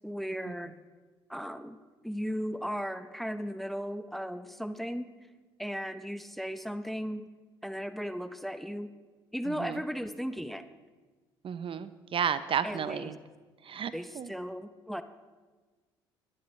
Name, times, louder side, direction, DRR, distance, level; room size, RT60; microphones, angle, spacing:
voice 1, 0.0-0.7 1.3-1.8 2.0-5.1 5.6-7.2 7.6-8.9 9.3-10.6 12.6-13.1 13.9-15.0, equal, ahead, 11 dB, 0.7 m, -36 dB
voice 2, 11.4-13.2 13.7-14.3, right 8 dB, 45° right, 14 dB, 0.6 m, -32 dB
17.5 x 10.5 x 3.2 m, 1.3 s
hypercardioid pair, 60°, 12 cm